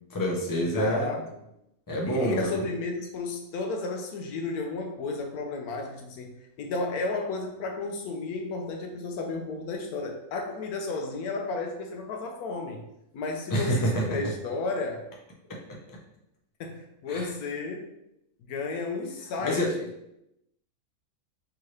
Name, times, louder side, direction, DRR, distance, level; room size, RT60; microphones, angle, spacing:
voice 1, 0.1-1.2 1.9-2.6 13.5-14.2 17.1-17.3 19.4-19.7, equal, 25° left, -1 dB, 0.4 m, -27 dB
voice 2, 0.7-1.2 2.0-12.8 13.1-15.1 16.6-17.9 18.5-19.6, left 3 dB, 85° left, 3 dB, 1.1 m, -33 dB
4.6 x 2.9 x 3.1 m, 0.82 s
omnidirectional pair, 1.5 m